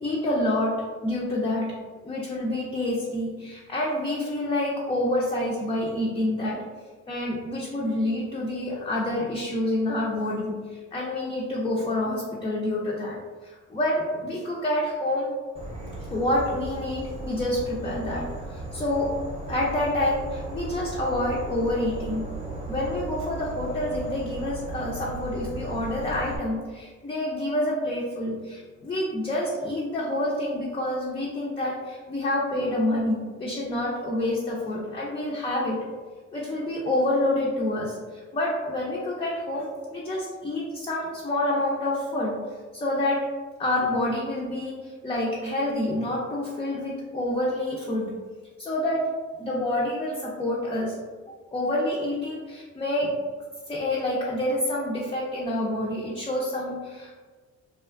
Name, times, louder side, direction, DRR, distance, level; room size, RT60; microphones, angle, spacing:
voice 1, 0.0-1.7 2.0-6.6 7.1-13.2 13.4-15.3 16.1-19.2 19.5-22.2 22.7-35.8 36.3-42.4 42.7-43.3 43.6-48.1 48.6-49.1 49.4-51.0 51.3-53.2 53.7-57.1, left 1 dB, 20° left, -4 dB, 0.4 m, -28 dB
Insect / Frog, 15.6-26.4, right 2 dB, 20° right, 0.7 m, -36 dB
2.4 x 2.2 x 2.4 m, 1.4 s
cardioid pair, 90°, 30 cm